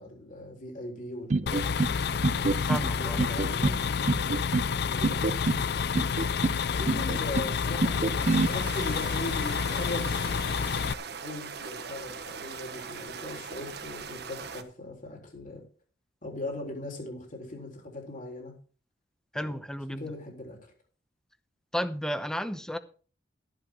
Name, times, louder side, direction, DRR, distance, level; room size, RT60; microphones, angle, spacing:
voice 1, 0.0-1.8 2.8-4.6 4.8-5.2 6.8-10.4 11.2-15.6 16.2-18.5 19.3-19.6 20.0-20.6, left 1 dB, 50° left, 3.7 m, -39 dB
sound 1, 1.3-1.9 2.2-2.9 3.2-3.8 4.1-4.7 5.0-5.6 5.9-6.6 6.9-7.5 7.8-8.5, right 3 dB, 40° right, 0.5 m, -27 dB
sound 2, 1.5-10.9, left 6 dB, 65° left, 0.5 m, -29 dB
voice 2, 2.7-3.2 19.3-20.1 21.7-22.8, equal, 5° left, 0.9 m, -33 dB
sound 3, 8.2-14.6, right 6 dB, 65° right, 1.3 m, -40 dB
13.5 x 11.0 x 3.8 m
head